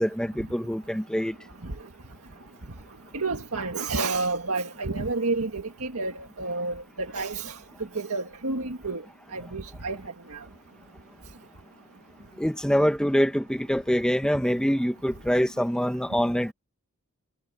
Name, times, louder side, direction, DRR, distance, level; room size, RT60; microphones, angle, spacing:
voice 1, 0.0-1.3 12.4-16.5, equal, 5° left, 1.2 m, -25 dB
voice 2, 3.1-7.6 8.0-9.0 9.3-10.0 10.3-10.4, right 3 dB, 75° right, 1.8 m, -30 dB
head